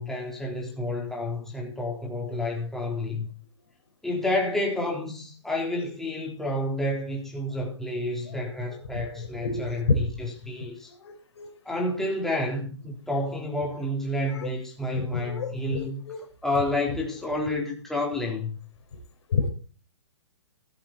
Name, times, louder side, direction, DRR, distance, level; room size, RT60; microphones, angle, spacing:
voice 1, 0.0-3.3 4.0-10.9 11.7-16.0 16.4-18.6, left 1 dB, ahead, 3.7 m, -30 dB
voice 2, 8.9-10.1 11.0-11.5 14.3-14.5 14.9-16.2 19.3-19.5, left 4 dB, 65° left, 4.5 m, -29 dB
16.5 x 7.7 x 4.3 m
hypercardioid pair, 135°, 15 cm